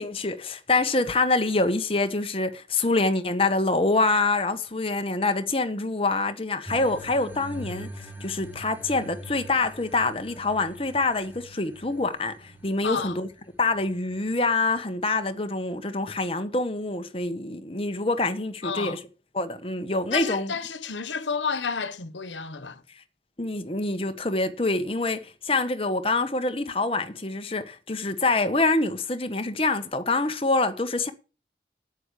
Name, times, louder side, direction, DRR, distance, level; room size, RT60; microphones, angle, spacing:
voice 1, 0.0-13.3 13.6-19.0 19.3-20.5 23.4-31.1, left 3 dB, 30° left, 1.3 m, -26 dB
sound 1, 6.7-14.7, equal, 10° right, 1.9 m, -43 dB
voice 2, 12.8-13.2 18.6-19.0 20.1-22.8, left 5 dB, 85° left, 1.3 m, -31 dB
9.0 x 8.9 x 8.3 m
head